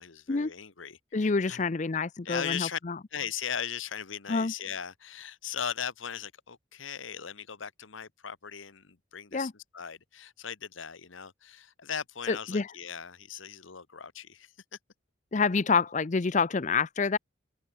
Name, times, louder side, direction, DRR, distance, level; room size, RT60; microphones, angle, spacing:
voice 1, 0.0-1.6 2.2-2.8 3.1-14.5, left 8 dB, 80° left, 1.2 m, -38 dB
voice 2, 1.1-3.0 4.3-4.5 9.3-9.5 12.3-12.7 15.3-17.2, left 4 dB, 40° left, 0.5 m, -27 dB
head